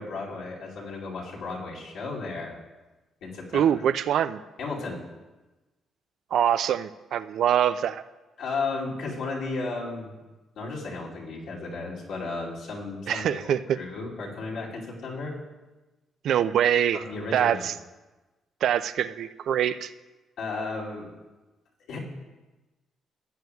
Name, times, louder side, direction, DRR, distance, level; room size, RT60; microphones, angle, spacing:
voice 1, 0.0-2.6 3.2-3.7 4.6-5.0 8.4-10.1 10.6-15.3 16.9-17.7 20.4-21.1 21.9-22.0, left 3 dB, 85° left, -5 dB, 2.5 m, -34 dB
voice 2, 3.5-4.4 6.3-8.0 13.1-13.6 16.2-17.0 17.3-17.7 18.6-19.9, right 9 dB, 70° right, 13 dB, 0.3 m, -24 dB
15.5 x 9.2 x 2.3 m, 1.1 s
cardioid pair, 90°, 0 cm